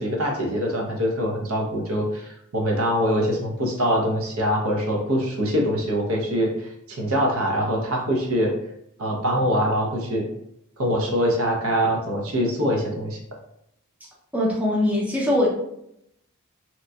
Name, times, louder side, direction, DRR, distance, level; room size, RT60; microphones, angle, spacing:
voice 1, 0.0-8.5 9.0-10.2 10.8-13.2, equal, 70° right, 0 dB, 0.7 m, -24 dB
voice 2, 14.3-15.5, left 1 dB, 5° right, -4 dB, 0.4 m, -21 dB
2.9 x 2.5 x 2.2 m, 0.77 s
head